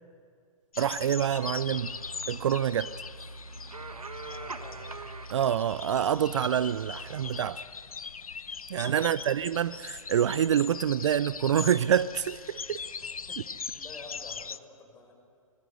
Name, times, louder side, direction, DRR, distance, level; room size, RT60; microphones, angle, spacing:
sound 1, 0.7-14.6, left 5 dB, 75° left, 0.7 m, -41 dB
voice 1, 0.8-2.0 2.3-2.9 5.3-7.6 8.7-12.8, right 9 dB, 55° right, 0.6 m, -27 dB
sound 2, 1.3-7.5, right 3 dB, 80° right, 1.3 m, -43 dB
voice 2, 4.2-5.0 9.0-9.5 13.0-13.5 13.7-15.1, left 3 dB, 15° left, 6.1 m, -50 dB
25.5 x 21.0 x 8.1 m
figure-of-eight pair, 120°, 19 cm